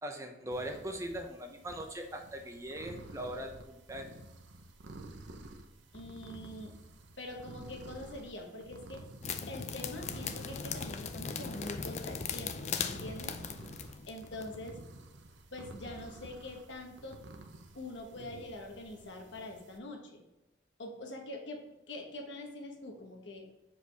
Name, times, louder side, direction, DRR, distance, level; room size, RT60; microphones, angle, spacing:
voice 1, 0.0-4.1, right 1 dB, 15° right, 4 dB, 0.7 m, -40 dB
sound 1, 0.5-19.8, right 2 dB, 75° right, 0.8 m, -51 dB
voice 2, 5.9-6.7 7.2-9.0 9.5-13.4 14.1-14.8 15.5-17.2 17.7-20.2 20.8-23.5, left 2 dB, 80° left, 2 dB, 1.2 m, -44 dB
sound 2, 9.2-14.5, left 6 dB, 35° left, 0.4 m, -38 dB
6.4 x 5.0 x 3.4 m, 0.98 s
head